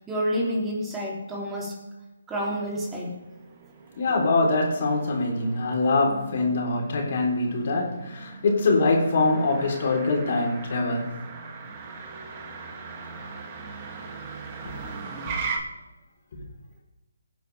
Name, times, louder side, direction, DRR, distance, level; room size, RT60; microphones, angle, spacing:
voice 1, 0.1-1.7 2.3-3.2, equal, 10° right, 3.2 m, -29 dB
Motor vehicle (road), 2.5-15.6, right 4 dB, 30° right, 2.4 m, -39 dB
voice 2, 4.0-11.2 16.3-16.4, left 3 dB, 50° left, 4.0 m, -24 dB
18.0 x 10.0 x 3.5 m
figure-of-eight pair, 150°, 0 cm